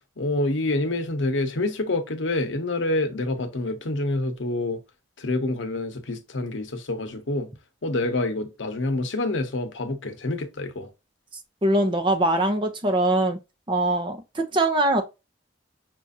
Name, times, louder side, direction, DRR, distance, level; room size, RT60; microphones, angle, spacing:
voice 1, 0.2-4.8 5.2-7.5 7.8-10.9, left 2 dB, 85° left, 0.9 m, -27 dB
voice 2, 11.6-13.4 13.7-15.0, right 1 dB, 25° right, 0.6 m, -22 dB
6.0 x 2.5 x 2.6 m
head